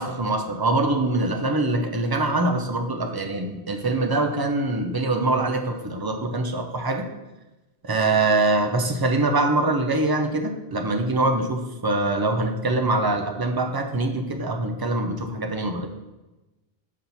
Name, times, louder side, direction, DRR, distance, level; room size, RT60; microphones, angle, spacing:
voice 1, 0.0-7.1 7.8-15.9, right 2 dB, 30° right, 4 dB, 0.5 m, -24 dB
7.3 x 4.2 x 4.0 m, 1.1 s
omnidirectional pair, 1.1 m